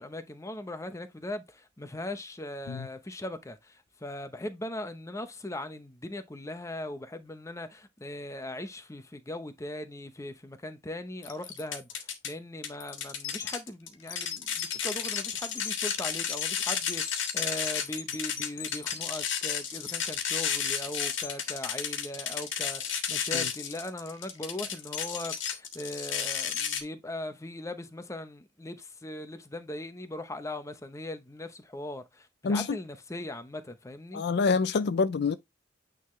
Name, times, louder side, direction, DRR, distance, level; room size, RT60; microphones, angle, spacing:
voice 1, 0.0-34.2, left 1 dB, 15° left, 0.8 m, -39 dB
sound 1, 11.2-12.3 12.6-26.8, left 8 dB, 80° left, 1.6 m, -32 dB
voice 2, 32.4-32.8 34.1-35.4, left 4 dB, 60° left, 0.4 m, -26 dB
9.2 x 3.8 x 3.1 m
head